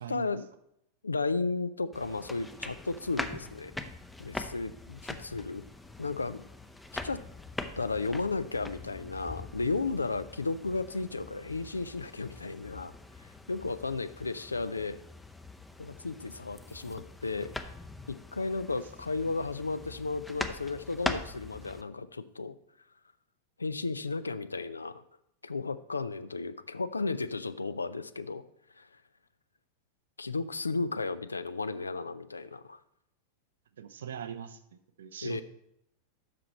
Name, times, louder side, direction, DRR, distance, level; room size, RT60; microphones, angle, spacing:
voice 1, 0.1-0.5 1.0-3.7 4.2-5.6 6.0-6.4 7.0-7.2 7.8-12.9 13.2-15.0 15.8-17.5 18.1-22.5 23.6-25.0 25.4-28.4 28.8-28.9 30.2-32.8 35.2-35.4, left 3 dB, 80° left, 15 dB, 0.3 m, -34 dB
sound 1, 1.9-21.8, left 2 dB, 5° left, 0.5 m, -42 dB
voice 2, 33.8-35.4, right 9 dB, 65° right, 11 dB, 0.6 m, -41 dB
7.5 x 6.0 x 4.2 m, 0.78 s
figure-of-eight pair, 90°, 0 cm